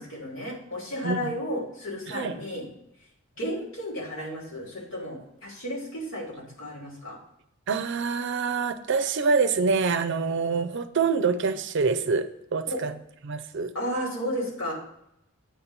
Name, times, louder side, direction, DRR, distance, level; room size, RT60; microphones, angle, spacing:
voice 1, 0.0-2.6 3.4-7.2 12.7-12.8 13.7-14.7, equal, 70° left, -3 dB, 3.3 m, -33 dB
voice 2, 1.0-1.3 2.1-2.3 7.7-12.9 13.2-13.7, right 4 dB, 60° right, 9 dB, 0.5 m, -26 dB
9.0 x 4.3 x 6.8 m, 0.80 s
head